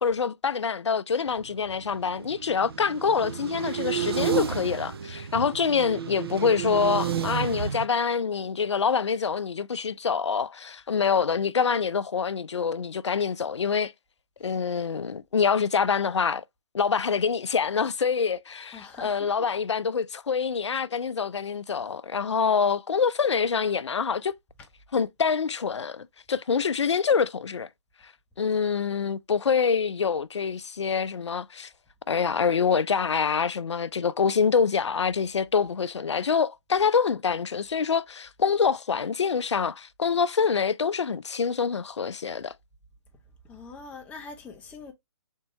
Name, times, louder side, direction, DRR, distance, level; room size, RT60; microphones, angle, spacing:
voice 1, 0.0-13.9 14.4-16.4 16.7-24.3 24.9-27.7 28.0-28.1 28.4-31.7 32.1-42.5, left 6 dB, 85° left, 0.4 m, -26 dB
sound 1, 1.3-7.9, right 8 dB, 60° right, 0.5 m, -31 dB
voice 2, 18.7-19.5 24.6-24.7 36.7-36.9 43.4-44.9, left 4 dB, 10° left, 0.6 m, -44 dB
3.6 x 2.7 x 4.0 m
figure-of-eight pair, 145°, 14 cm